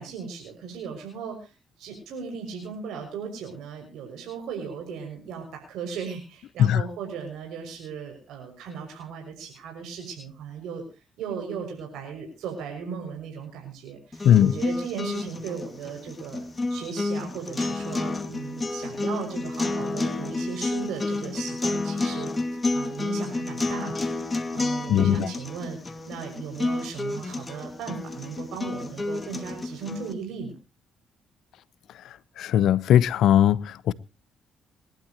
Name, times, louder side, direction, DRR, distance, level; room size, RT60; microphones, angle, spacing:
voice 1, 0.0-1.5 1.8-10.8 11.2-30.6, right 6 dB, 85° right, 6.3 m, -37 dB
sound 1, 14.1-30.1, left 2 dB, 25° left, 2.4 m, -30 dB
voice 2, 24.9-25.3 32.4-33.9, left 10 dB, 80° left, 0.8 m, -19 dB
26.0 x 12.0 x 3.0 m
cardioid pair, 90°, 0 cm